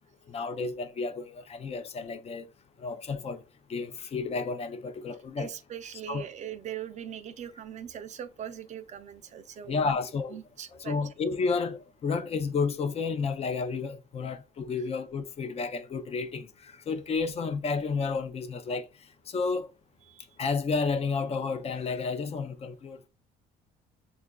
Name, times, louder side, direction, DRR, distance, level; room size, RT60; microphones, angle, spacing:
voice 1, 0.3-2.5 2.8-3.4 3.7-5.5 6.1-6.3 9.7-10.4 10.7-18.9 19.3-19.7 20.4-23.1, left 4 dB, 35° left, 0.5 m, -31 dB
voice 2, 5.4-9.9 10.3-11.0 20.1-20.2, right 9 dB, 45° right, 0.5 m, -40 dB
6.3 x 2.4 x 2.2 m
cardioid pair, 110°, 17 cm